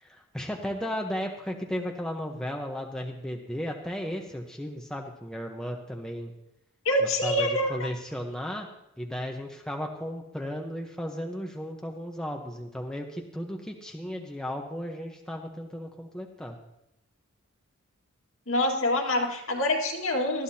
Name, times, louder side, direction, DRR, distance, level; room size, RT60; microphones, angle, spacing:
voice 1, 0.0-6.3 7.0-8.7 9.0-16.6, equal, 5° left, 1 dB, 1.0 m, -35 dB
voice 2, 6.9-7.9 18.5-20.4, left 1 dB, 70° left, 1 dB, 2.1 m, -26 dB
19.5 x 13.5 x 2.9 m, 0.81 s
head